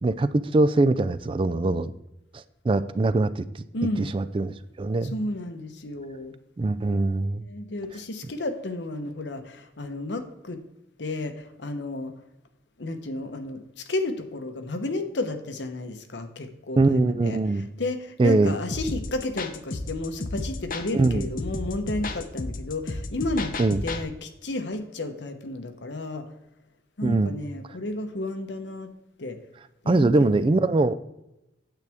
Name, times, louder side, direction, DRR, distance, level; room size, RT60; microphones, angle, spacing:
voice 1, 0.0-1.9 2.3-3.6 4.0-5.1 6.6-7.5 16.8-17.7 18.2-18.6 20.9-21.2 23.6-23.8 27.0-27.3 29.9-30.9, right 2 dB, 30° right, 14 dB, 0.3 m, -22 dB
voice 2, 3.7-4.1 5.1-6.3 7.5-10.6 11.0-12.1 12.8-23.5 23.8-26.2 27.0-28.9 29.2-29.4 29.8-30.3, left 2 dB, 75° left, 7 dB, 1.0 m, -32 dB
sound 1, 18.7-24.0, left 2 dB, 50° left, 0.7 m, -33 dB
9.1 x 8.1 x 3.5 m, 0.91 s
head